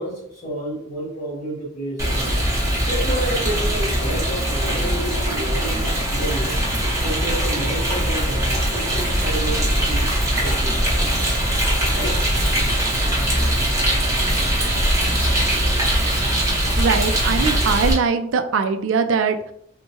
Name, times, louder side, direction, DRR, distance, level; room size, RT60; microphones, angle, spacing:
voice 1, 0.0-2.4 2.9-6.6 7.0-10.1 10.4-11.0 12.0-12.2, right 1 dB, 35° left, -7 dB, 1.1 m, -30 dB
Rain, 2.0-17.9, right 1 dB, 15° right, 1.0 m, -21 dB
voice 2, 16.8-19.5, right 5 dB, 70° right, 8 dB, 0.4 m, -21 dB
4.4 x 2.1 x 2.8 m, 0.71 s
head